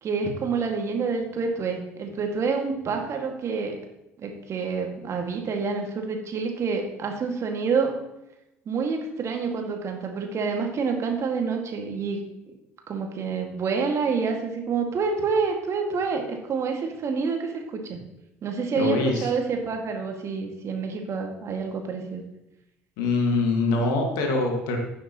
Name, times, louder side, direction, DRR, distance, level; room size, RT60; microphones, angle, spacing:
voice 1, 0.0-3.8 4.2-7.9 8.7-12.2 12.9-18.0 18.4-22.2, right 5 dB, 40° right, 3 dB, 2.0 m, -28 dB
voice 2, 18.8-19.3 23.0-24.8, left 3 dB, 60° left, 2 dB, 1.9 m, -23 dB
16.0 x 6.6 x 3.1 m, 0.90 s
figure-of-eight pair, 55°, 7 cm